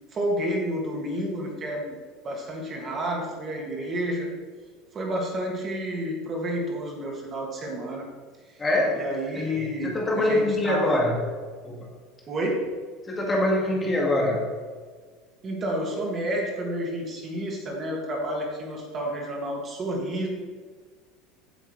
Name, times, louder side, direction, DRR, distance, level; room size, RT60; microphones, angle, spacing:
voice 1, 0.1-2.0 2.2-4.3 4.9-8.1 8.9-11.0 12.3-12.7 15.4-20.3, equal, 25° right, 0 dB, 2.0 m, -30 dB
voice 2, 8.6-9.0 9.4-9.5 9.8-11.2 11.6-11.9 13.1-14.5, left 1 dB, 15° left, -1 dB, 1.7 m, -24 dB
16.0 x 9.1 x 3.2 m, 1.6 s
cardioid pair, 175°, 0 cm